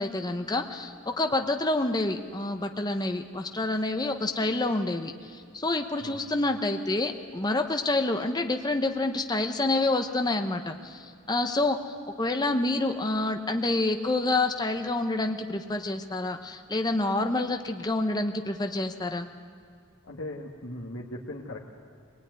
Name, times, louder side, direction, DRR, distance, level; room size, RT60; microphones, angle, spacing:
voice 1, 0.0-19.3, left 2 dB, 20° left, 6 dB, 0.9 m, -28 dB
voice 2, 20.1-21.7, left 1 dB, 70° left, -3 dB, 2.0 m, -38 dB
24.0 x 19.0 x 9.5 m, 2.1 s
head